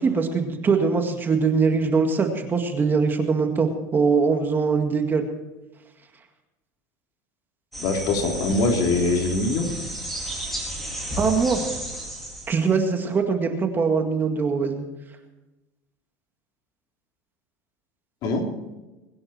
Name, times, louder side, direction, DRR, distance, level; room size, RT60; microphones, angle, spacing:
voice 1, 0.0-5.2 11.2-11.6 12.5-14.9, right 5 dB, 25° right, 5 dB, 2.0 m, -22 dB
sound 1, 7.7-12.8, right 1 dB, ahead, 4.2 m, -33 dB
voice 2, 7.8-9.7 18.2-18.4, left 3 dB, 50° left, 2 dB, 3.5 m, -23 dB
21.5 x 11.0 x 4.4 m, 1.1 s
supercardioid pair, 125°, 9 cm